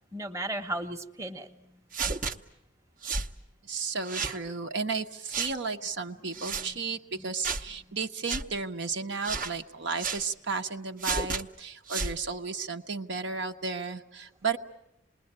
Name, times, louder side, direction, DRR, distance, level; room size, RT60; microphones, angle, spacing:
voice 1, 0.1-1.8 6.5-6.8 7.1-7.3, right 1 dB, 15° right, 4 dB, 1.1 m, -36 dB
sound 1, 1.9-2.3 3.0-3.3 4.0-4.4 5.3-5.5 6.3-6.7 7.4-7.7 8.2-8.4 9.2-9.5 10.0-10.2 11.0-11.4 11.9-12.2, right 5 dB, 45° right, 0.9 m, -31 dB
voice 2, 3.6-14.6, right 4 dB, 70° right, 4 dB, 1.1 m, -33 dB
27.5 x 21.0 x 8.8 m, 0.83 s
head